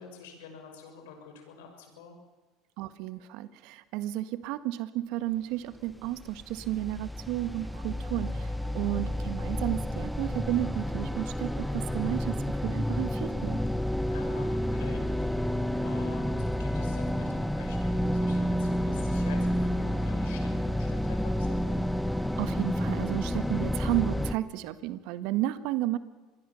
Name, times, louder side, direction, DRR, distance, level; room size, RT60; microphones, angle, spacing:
voice 1, 0.0-2.2 8.6-9.0 14.1-15.3 15.8-21.9, left 5 dB, 80° left, 4 dB, 6.1 m, -48 dB
voice 2, 2.8-13.6 22.4-26.0, right 15 dB, 70° right, 13 dB, 1.6 m, -32 dB
sound 1, 5.9-24.3, equal, ahead, 1.3 m, -30 dB
26.5 x 21.5 x 7.1 m, 1.3 s
hypercardioid pair, 80°, 0 cm